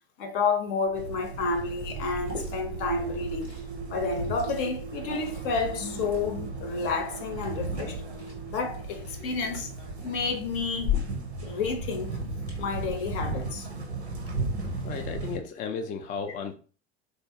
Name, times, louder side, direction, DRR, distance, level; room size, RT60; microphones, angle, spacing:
voice 1, 0.2-3.5 3.9-8.0 8.5-9.7 10.0-10.9 11.4-12.2 12.6-13.7, left 4 dB, 55° left, 0.7 m, -30 dB
sound 1, 0.9-12.7, right 5 dB, 40° right, 0.4 m, -42 dB
sound 2, 0.9-15.4, right 3 dB, 90° right, 0.6 m, -36 dB
Liquid, 1.5-12.6, left 9 dB, 90° left, 0.9 m, -40 dB
voice 2, 14.8-16.5, left 6 dB, 25° left, 0.4 m, -34 dB
3.5 x 2.5 x 2.7 m
figure-of-eight pair, 70°, 32 cm